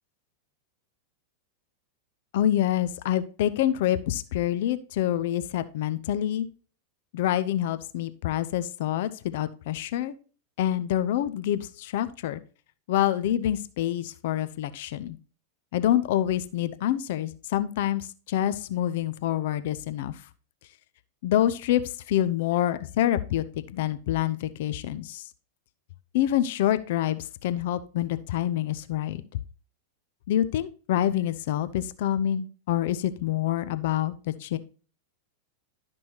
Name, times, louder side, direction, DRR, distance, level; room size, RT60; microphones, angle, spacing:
voice 1, 2.3-6.5 7.1-10.1 10.6-12.4 12.9-15.2 15.7-20.1 21.2-21.8 22.1-23.4 23.7-25.2 26.1-29.2 30.3-34.6, left 12 dB, 55° left, 13 dB, 0.6 m, -26 dB
11.5 x 6.1 x 2.9 m, 0.38 s
figure-of-eight pair, 90°, 0 cm